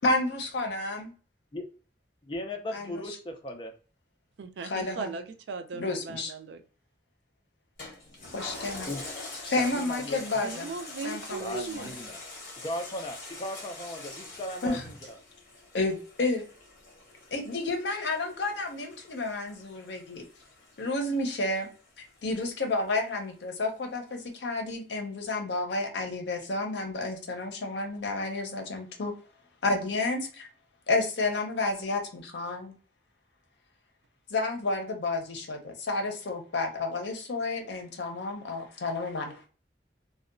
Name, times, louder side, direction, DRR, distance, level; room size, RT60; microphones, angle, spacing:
voice 1, 0.0-1.1 2.7-3.2 4.6-5.1 5.8-6.3 8.3-8.9 9.5-10.7 11.0-11.9 14.6-14.8 15.7-16.4 17.3-20.2 20.8-21.7 22.2-29.1 29.6-30.5 30.9-32.7 34.3-39.3, left 2 dB, 75° left, 4 dB, 0.6 m, -31 dB
voice 2, 2.2-3.7 8.9-9.0 9.4-10.2 11.4-12.2 12.6-15.2, left 1 dB, 25° left, 4 dB, 0.4 m, -37 dB
voice 3, 4.4-6.6 10.4-11.9, right 4 dB, 75° right, 8 dB, 0.3 m, -38 dB
Toilet flush, 7.8-22.6 23.1-23.2, left 2 dB, 45° left, 1.0 m, -45 dB
2.7 x 2.1 x 2.4 m, 0.38 s
head